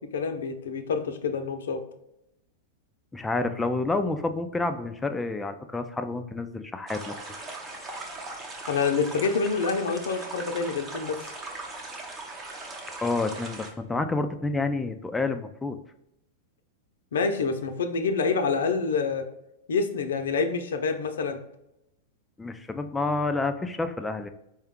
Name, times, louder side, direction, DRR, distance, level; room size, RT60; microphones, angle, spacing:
voice 1, 0.1-1.8 8.7-11.2 17.1-19.2 19.7-21.4, left 5 dB, 90° left, 7 dB, 0.6 m, -27 dB
voice 2, 3.1-7.2 13.0-15.8 22.4-24.3, left 3 dB, 10° left, 8 dB, 0.3 m, -29 dB
sound 1, 6.9-13.7, right 2 dB, 20° right, 0.8 m, -39 dB
4.4 x 2.3 x 3.6 m, 0.84 s
supercardioid pair, 140°, 0 cm